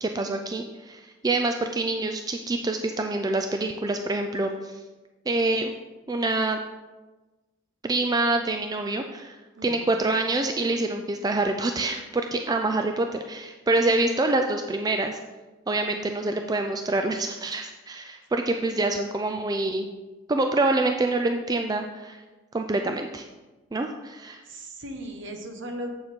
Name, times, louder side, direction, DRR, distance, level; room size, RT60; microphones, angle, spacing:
voice 1, 0.0-4.7 5.3-5.7 6.1-6.6 7.8-9.4 9.6-15.2 15.7-19.9 20.3-22.2 22.5-23.2 23.7-24.4, right 2 dB, 20° right, 5 dB, 0.3 m, -26 dB
voice 2, 24.5-25.9, right 1 dB, 60° right, 4 dB, 1.1 m, -37 dB
7.9 x 7.1 x 3.6 m, 1.2 s
head